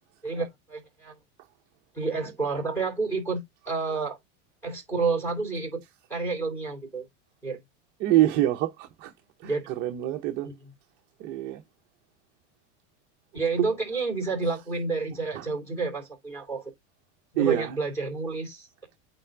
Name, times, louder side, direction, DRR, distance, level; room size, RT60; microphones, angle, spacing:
voice 1, 0.2-1.1 1.9-3.4 3.7-4.2 4.6-5.8 6.1-7.0 7.4-7.6 9.4-9.6 10.4-10.7 13.3-16.7 17.3-18.7, right 4 dB, 5° left, 2.9 m, -30 dB
voice 2, 8.0-9.1 9.4-10.5 11.2-11.6 13.6-13.7 15.3-15.5 17.4-17.8, right 14 dB, 30° right, 0.6 m, -25 dB
8.9 x 3.3 x 3.7 m
supercardioid pair, 175°, 36 cm